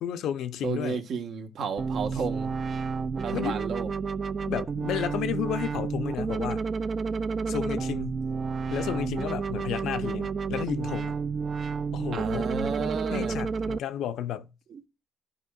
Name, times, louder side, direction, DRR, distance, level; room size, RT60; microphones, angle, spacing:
voice 1, 0.0-1.0 3.3-3.6 4.4-6.7 7.5-8.2 8.7-11.2 11.9-12.5 13.1-14.5, left 10 dB, 80° left, 0.5 m, -32 dB
voice 2, 0.6-2.5 3.2-3.9 12.1-13.4 14.7-14.8, right 5 dB, 70° right, 1.2 m, -32 dB
sound 1, 1.8-13.8, right 5 dB, 40° right, 0.3 m, -30 dB
12.5 x 5.2 x 2.3 m
cardioid pair, 90°, 0 cm